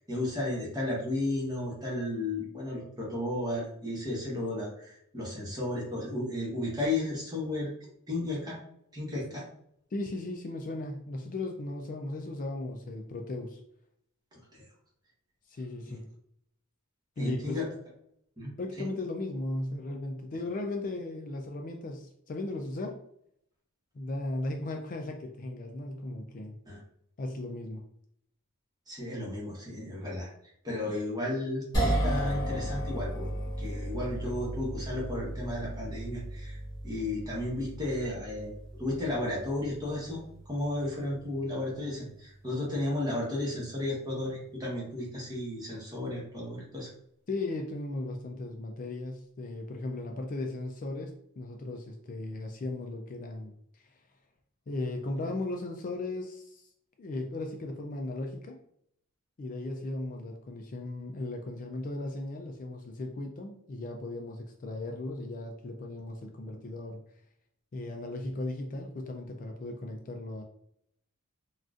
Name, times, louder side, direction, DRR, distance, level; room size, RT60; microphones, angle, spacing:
voice 1, 0.0-7.7 8.1-8.6 8.9-9.4 14.3-14.6 15.9-16.0 17.2-17.7 18.4-18.5 18.8-18.9 26.7-26.8 28.9-30.3 30.6-33.3 33.6-36.6 36.8-38.5 38.8-40.2 40.5-46.9, left 1 dB, 20° right, -4 dB, 1.0 m, -33 dB
voice 2, 9.9-13.6 15.5-16.0 17.2-17.6 18.6-23.0 23.9-26.5 27.2-27.8 47.3-54.0 54.7-56.7 57.0-58.6 59.4-67.0 67.7-70.4, left 2 dB, 40° left, 3 dB, 0.3 m, -36 dB
sound 1, 31.7-44.1, right 1 dB, 20° left, 1.5 m, -36 dB
3.7 x 2.4 x 2.4 m, 0.70 s
head